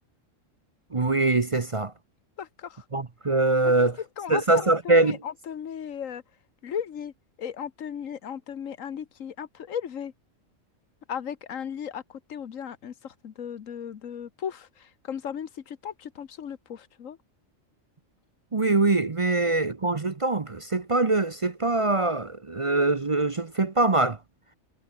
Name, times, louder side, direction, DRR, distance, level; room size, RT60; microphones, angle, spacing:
voice 1, 0.9-1.9 2.9-4.0 4.3-5.2 18.5-24.2, right 2 dB, 30° right, 0.7 m, -23 dB
voice 2, 2.4-2.8 4.2-6.2 6.6-7.1 7.4-10.1 11.1-17.2, left 8 dB, 90° left, 1.5 m, -36 dB
omnidirectional pair, 1.3 m